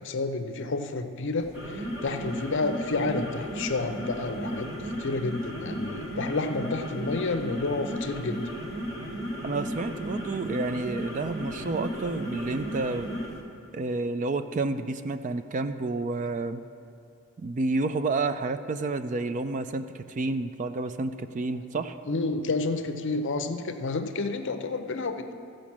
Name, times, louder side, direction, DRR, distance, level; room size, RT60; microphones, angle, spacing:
voice 1, 0.0-8.5 21.8-25.3, left 3 dB, 55° left, 8 dB, 0.6 m, -30 dB
sound 1, 1.4-13.4, equal, 15° right, 1.4 m, -35 dB
voice 2, 9.4-13.1 13.7-16.6 17.4-21.9, right 3 dB, 35° right, 10 dB, 0.3 m, -30 dB
14.5 x 5.2 x 7.2 m, 2.5 s
head